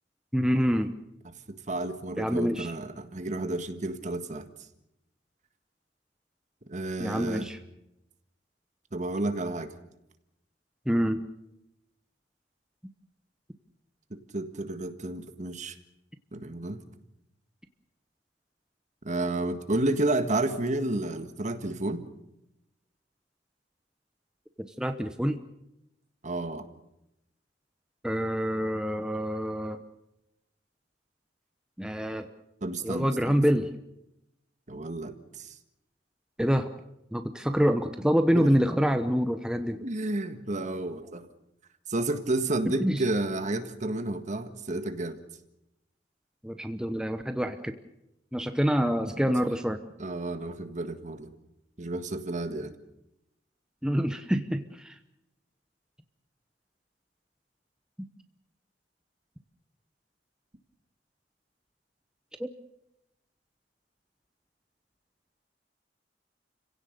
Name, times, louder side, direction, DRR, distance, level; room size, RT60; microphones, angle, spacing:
voice 1, 0.3-0.9 2.2-2.7 7.0-7.6 10.9-11.2 24.8-25.4 28.0-29.8 31.8-32.3 32.8-33.7 36.4-36.7 37.1-39.8 42.8-43.0 46.4-47.7 48.3-49.8 53.8-54.9 58.0-58.1 62.4-62.5, equal, 5° right, 7 dB, 0.9 m, -26 dB
voice 2, 1.2-4.5 6.7-7.5 8.9-9.7 14.1-15.7 16.3-16.8 19.0-22.1 26.2-26.7 32.6-33.4 34.7-35.5 38.3-38.6 39.8-41.3 41.9-45.2 49.2-49.3 50.0-51.3 51.8-52.7, right 2 dB, 45° right, 9 dB, 1.7 m, -31 dB
29.5 x 16.5 x 6.7 m, 0.87 s
head